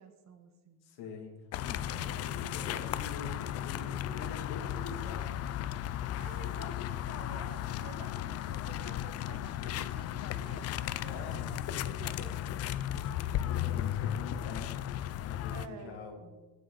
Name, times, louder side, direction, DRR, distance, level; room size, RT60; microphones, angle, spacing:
voice 1, 0.0-0.8 1.7-2.9 6.0-12.7 15.5-16.0, right 6 dB, 45° right, 7 dB, 1.4 m, -51 dB
voice 2, 0.8-1.3 1.6-5.5 11.1-11.6 13.4-14.8 15.2-16.4, left 4 dB, 85° left, 1 dB, 2.8 m, -45 dB
sound 1, 1.5-15.7, left 12 dB, 45° left, 0.4 m, -35 dB
17.5 x 8.2 x 4.0 m, 1.2 s
cardioid pair, 160°, 37 cm